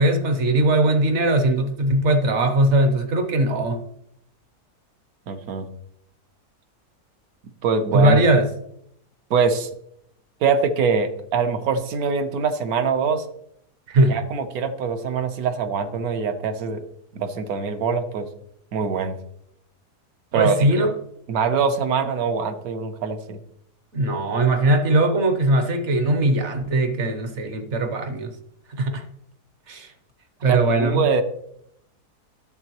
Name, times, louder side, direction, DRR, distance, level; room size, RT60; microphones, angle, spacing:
voice 1, 0.0-3.8 7.9-8.5 13.9-14.2 20.3-20.9 23.9-28.3 28.7-29.0 29.7-29.9 30.4-31.1, right 1 dB, 55° right, 7 dB, 1.0 m, -20 dB
voice 2, 5.3-5.7 7.6-8.2 9.3-9.7 10.4-13.2 14.1-16.8 17.1-18.3 18.7-19.2 20.3-20.9 21.3-23.4 30.5-31.2, right 5 dB, 70° right, 8 dB, 1.2 m, -23 dB
10.5 x 7.1 x 3.0 m, 0.73 s
omnidirectional pair, 1.7 m